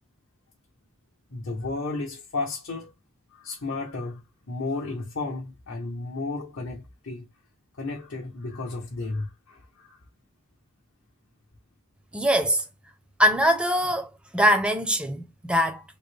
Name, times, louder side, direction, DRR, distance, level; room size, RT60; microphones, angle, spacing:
voice 1, 1.3-2.9 3.3-7.3 7.7-10.0, left 3 dB, 60° left, 0.9 m, -33 dB
voice 2, 12.1-12.6 13.2-15.8, equal, 5° right, 0.5 m, -22 dB
3.7 x 2.1 x 3.3 m
head